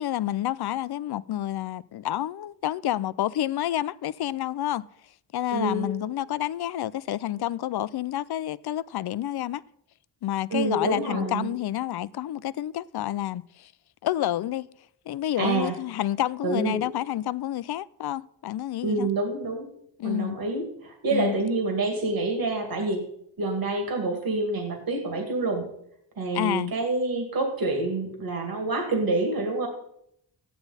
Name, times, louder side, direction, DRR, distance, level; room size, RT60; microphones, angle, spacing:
voice 1, 0.0-4.9 5.3-9.6 10.2-13.7 14.0-14.7 15.1-19.1 20.0-20.4 21.1-21.4 26.3-26.7, left 13 dB, 65° left, 0.5 m, -29 dB
voice 2, 5.5-5.9 10.5-11.5 15.4-15.7 16.4-16.9 18.8-19.7 20.0-23.0 23.4-25.7 26.2-29.7, right 3 dB, 55° right, 2.2 m, -27 dB
14.0 x 9.3 x 4.1 m
wide cardioid pair, 120°, 43 cm